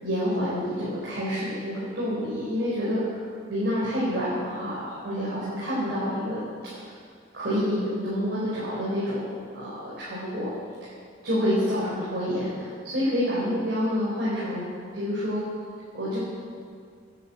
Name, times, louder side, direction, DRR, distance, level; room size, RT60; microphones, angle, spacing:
voice 1, 0.0-6.4 6.7-6.8 7.3-10.5 11.2-15.4 15.9-16.2, equal, 60° right, -8 dB, 4.6 m, -28 dB
13.5 x 9.9 x 8.6 m, 2.2 s
head